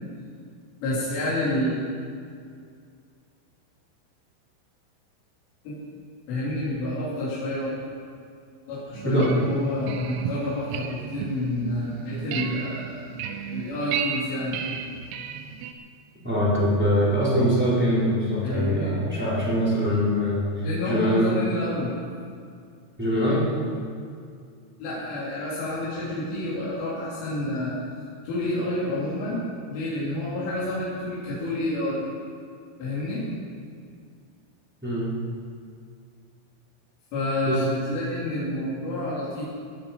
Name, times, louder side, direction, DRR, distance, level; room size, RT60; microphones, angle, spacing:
voice 1, 0.8-1.8 5.7-5.8 6.3-7.7 8.7-13.1 13.4-14.8 18.4-19.0 20.6-21.9 24.8-27.8 28.2-32.0 32.8-33.3 37.1-39.4, left 1 dB, 85° left, -9 dB, 5.6 m, -29 dB
sound 1, 8.9-15.7, right 7 dB, 85° right, 3.2 m, -34 dB
voice 2, 9.0-9.6 16.2-21.3 23.0-23.5 34.8-35.1 37.5-37.7, equal, ahead, -9 dB, 3.9 m, -23 dB
18.0 x 12.5 x 5.4 m, 2.2 s
omnidirectional pair, 5.5 m